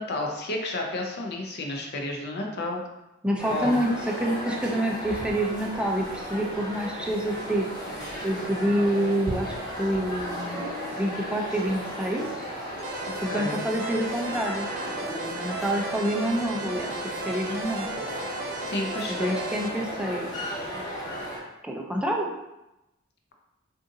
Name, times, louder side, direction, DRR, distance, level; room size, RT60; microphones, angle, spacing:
voice 1, 0.0-2.8 3.5-3.8 13.1-13.6 18.5-19.4, left 2 dB, 55° left, 2 dB, 0.5 m, -31 dB
voice 2, 3.2-7.7 8.2-10.6 10.9-12.4 13.2-17.9 19.1-20.3 21.6-22.3, right 1 dB, 5° right, 0 dB, 0.4 m, -27 dB
sound 1, 3.4-21.4, equal, 20° left, 1.2 m, -35 dB
sound 2, 12.8-19.7, right 3 dB, 90° right, 0.5 m, -36 dB
3.7 x 2.5 x 2.6 m, 0.93 s
head